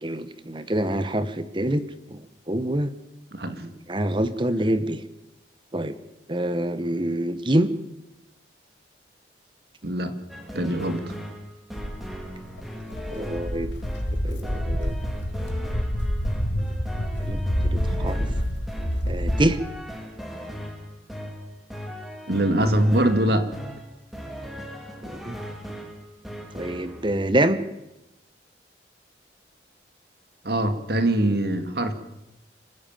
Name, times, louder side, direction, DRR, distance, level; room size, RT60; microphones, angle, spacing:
voice 1, 0.0-1.8 2.1-2.2 2.5-2.9 3.9-5.0 5.7-5.9 6.3-7.7 13.1-13.7 14.2-14.9 17.3-18.3 19.1-19.6 25.0-25.3 26.5-27.6, right 1 dB, 25° right, 12 dB, 1.1 m, -25 dB
voice 2, 3.3-3.6 9.8-10.2 10.5-11.1 22.3-23.5 30.4-31.9, right 1 dB, 60° right, 9 dB, 2.2 m, -23 dB
sound 1, 10.3-27.1, equal, ahead, 3.0 m, -38 dB
Walk footsteps, 11.8-19.5, equal, 90° left, 2.9 m, -27 dB
26.0 x 15.0 x 9.1 m, 0.94 s
head